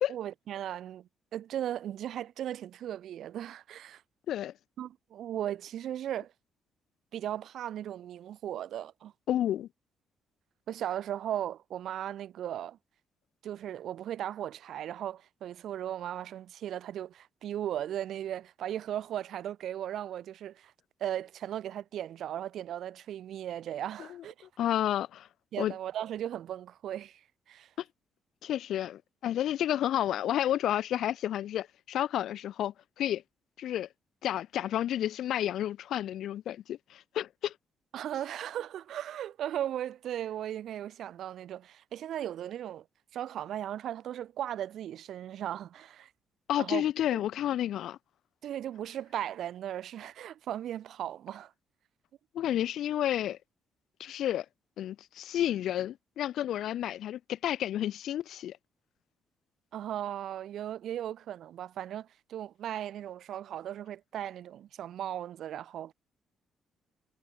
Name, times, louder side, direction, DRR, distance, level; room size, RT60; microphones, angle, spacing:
voice 1, 0.1-4.0 4.8-6.3 7.1-9.1 10.7-12.8 13.4-20.7 21.0-24.5 25.5-27.2 27.5-27.7 37.9-42.8 43.1-46.1 46.6-46.8 47.1-47.2 48.4-51.5 59.7-65.9, right 11 dB, 70° right, 1.0 m, -37 dB
voice 2, 9.3-9.7 24.0-24.2 24.6-25.3 25.6-25.7 28.4-33.2 33.6-33.9 34.2-37.5 46.5-48.0 52.3-53.4 54.0-54.5 54.8-58.6, left 11 dB, 75° left, 0.4 m, -31 dB
cardioid pair, 90°, 0 cm